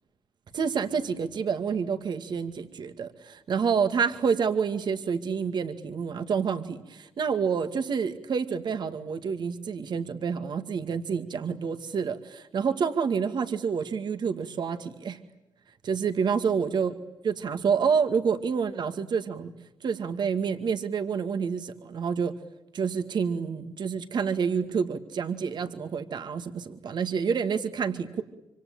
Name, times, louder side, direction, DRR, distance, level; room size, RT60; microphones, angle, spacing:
voice 1, 0.5-15.2 15.8-16.9 17.2-19.5 19.8-22.3 22.7-28.2, right 6 dB, 65° right, 8 dB, 2.2 m, -28 dB
26.5 x 25.5 x 8.8 m, 0.93 s
cardioid pair, 75°, 8 cm